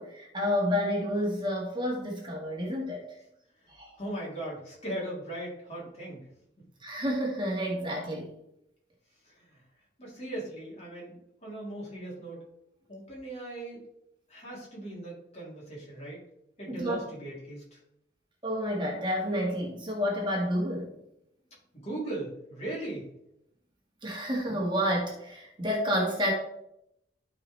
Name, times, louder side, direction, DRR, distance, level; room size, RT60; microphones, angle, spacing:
voice 1, 0.0-3.0 3.7-3.9 6.8-8.3 16.7-17.0 18.4-20.9 24.0-26.3, equal, 25° right, -2 dB, 1.7 m, -30 dB
voice 2, 4.0-6.2 9.2-9.6 10.0-12.4 12.9-13.8 14.3-16.2 16.6-17.8 21.7-23.1, right 1 dB, 35° left, -5 dB, 3.2 m, -39 dB
13.0 x 4.9 x 3.3 m, 0.78 s
head